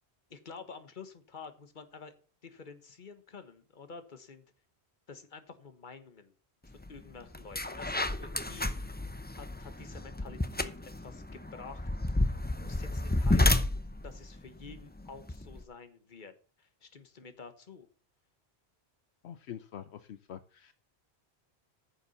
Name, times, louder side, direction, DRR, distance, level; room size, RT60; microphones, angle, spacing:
voice 1, 0.3-2.1 2.4-4.4 5.1-6.3 6.6-9.0 9.3-12.3 12.5-13.7 14.0-17.9, left 5 dB, 45° left, 10 dB, 1.4 m, -49 dB
sound 1, 6.8-7.0 7.3-15.6, left 2 dB, 10° left, 0.6 m, -31 dB
voice 2, 19.2-20.7, left 10 dB, 75° left, 12 dB, 1.0 m, -45 dB
9.8 x 7.1 x 7.0 m, 0.39 s
omnidirectional pair, 1.1 m